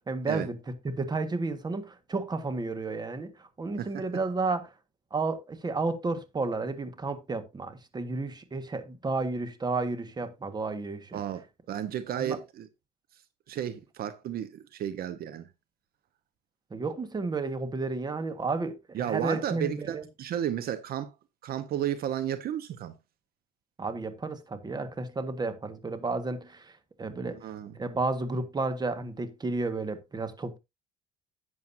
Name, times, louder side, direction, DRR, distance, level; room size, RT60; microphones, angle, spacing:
voice 1, 0.1-0.6 0.8-4.7 5.1-11.2 12.2-12.4 16.7-20.0 23.8-26.7 27.0-27.4 27.7-30.6, right 3 dB, 25° right, 1.7 m, -32 dB
voice 2, 3.8-4.2 11.1-12.7 13.5-15.5 18.9-21.1 21.4-23.0 27.3-27.8, right 10 dB, 65° right, 1.1 m, -33 dB
11.0 x 9.1 x 2.7 m
cardioid pair, 110°, 17 cm